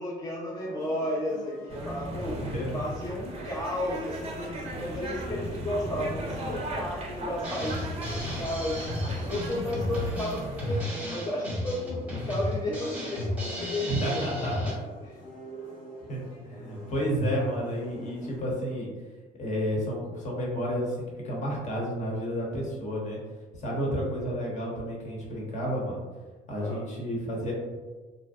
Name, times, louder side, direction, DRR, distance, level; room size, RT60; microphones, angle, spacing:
voice 1, 0.0-2.4 2.7-9.0 9.3-14.4 26.6-26.8, left 1 dB, 20° left, -4 dB, 0.4 m, -33 dB
sound 1, 0.6-18.4, equal, 75° left, 1.4 m, -47 dB
sound 2, 1.7-10.8, right 1 dB, 35° right, 0.5 m, -37 dB
voice 2, 2.3-2.7 13.9-14.8 16.1-18.9 19.4-23.2 23.5-26.0 26.5-27.5, equal, 45° left, -3 dB, 0.9 m, -31 dB
Drum kit, 7.4-14.7, left 1 dB, 10° right, 0.8 m, -34 dB
2.6 x 2.0 x 2.4 m, 1.4 s
cardioid pair, 110°, 17 cm